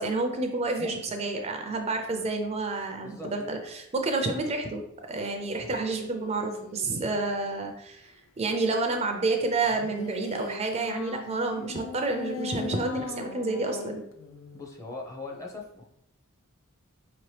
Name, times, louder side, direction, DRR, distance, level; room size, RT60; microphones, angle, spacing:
voice 1, 0.0-14.0, right 3 dB, 30° right, 4 dB, 0.4 m, -29 dB
voice 2, 0.8-1.2 3.0-3.5 14.5-15.8, left 3 dB, 15° left, 0 dB, 0.6 m, -40 dB
sound 1, 5.6-7.4 9.6-14.7, left 6 dB, 65° left, 0.4 m, -40 dB
4.3 x 2.9 x 3.2 m, 0.79 s
head